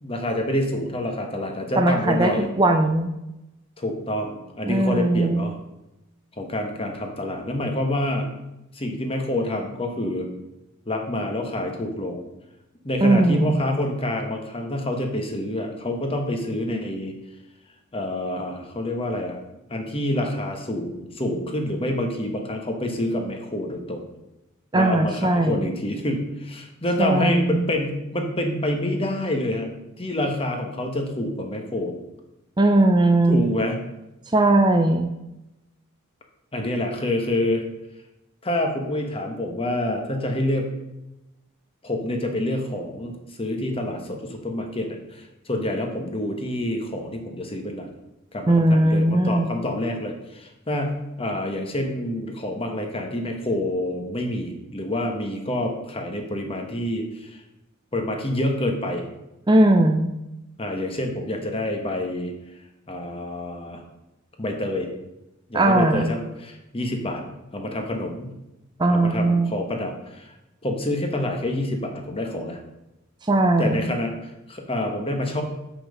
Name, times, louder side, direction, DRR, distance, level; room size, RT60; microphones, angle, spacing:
voice 1, 0.0-2.5 3.8-5.6 6.4-8.3 8.7-10.3 10.9-12.2 12.8-17.1 17.9-19.4 19.7-24.1 24.7-29.7 30.0-32.0 33.3-33.8 36.5-37.6 38.4-40.7 41.8-47.9 48.3-57.4 57.9-59.1 60.6-62.3 62.9-63.8 64.4-64.9 65.5-67.2 67.5-68.3 68.9-70.3 70.6-72.6 73.6-75.4, left 1 dB, 25° left, 3 dB, 1.3 m, -27 dB
voice 2, 1.8-3.1 4.7-5.4 13.0-13.6 24.7-25.6 27.0-27.6 32.6-33.4 34.3-35.1 48.5-49.5 59.5-60.1 65.5-66.1 68.8-69.5 73.2-73.9, right 2 dB, 20° right, 5 dB, 0.5 m, -19 dB
6.9 x 5.9 x 6.5 m, 0.93 s
head